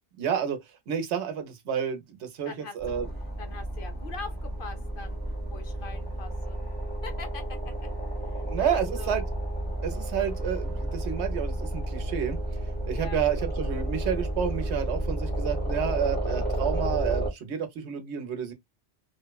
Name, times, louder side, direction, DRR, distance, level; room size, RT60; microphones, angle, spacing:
voice 1, 0.2-0.6 0.9-3.1 8.4-9.2 9.8-12.4 12.9-18.5, right 8 dB, 80° right, 0.9 m, -30 dB
sound 1, 2.8-17.3, right 1 dB, 10° left, 0.9 m, -31 dB
voice 2, 3.4-5.2 5.5-6.6 7.0-7.9 8.3-9.2 12.9-13.2, left 4 dB, 60° left, 0.7 m, -42 dB
2.9 x 2.0 x 2.2 m
omnidirectional pair, 1.1 m